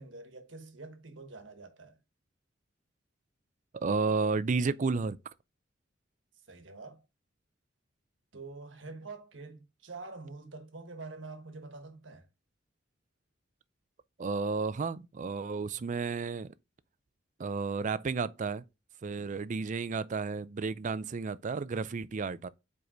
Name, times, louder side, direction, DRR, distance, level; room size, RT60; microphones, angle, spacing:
voice 1, 0.0-2.0 6.5-7.0 8.3-12.3 19.0-19.4, right 3 dB, 70° right, 1.2 m, -46 dB
voice 2, 3.7-5.2 14.2-16.5 17.4-18.6 19.0-22.5, right 4 dB, 40° right, 0.4 m, -32 dB
5.0 x 4.7 x 5.0 m
head